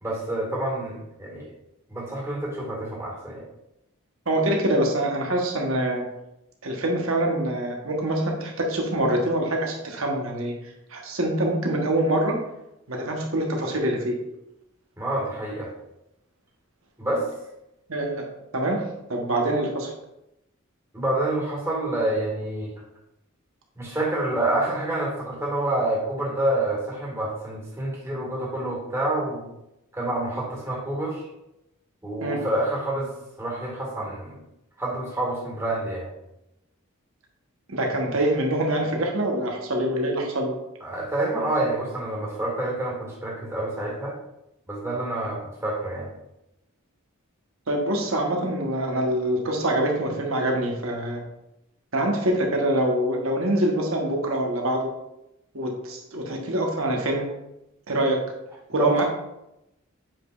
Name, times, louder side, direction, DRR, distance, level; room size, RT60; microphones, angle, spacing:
voice 1, 0.0-1.5 1.9-3.4 15.0-15.7 17.0-17.2 20.9-22.7 23.8-29.5 29.9-31.2 32.0-33.1 33.4-34.4 34.8-36.1 40.8-44.1 44.7-46.1 58.7-59.0, right 1 dB, 15° right, -5 dB, 1.9 m, -27 dB
voice 2, 4.3-6.0 6.6-10.5 10.9-12.4 12.9-14.1 17.9-18.3 18.5-18.8 19.1-19.9 32.2-32.4 37.7-40.5 47.7-51.2 51.9-54.9 55.5-57.3 57.9-58.2 58.7-59.0, right 1 dB, 70° right, 1 dB, 1.3 m, -25 dB
7.7 x 5.0 x 2.5 m, 0.88 s
head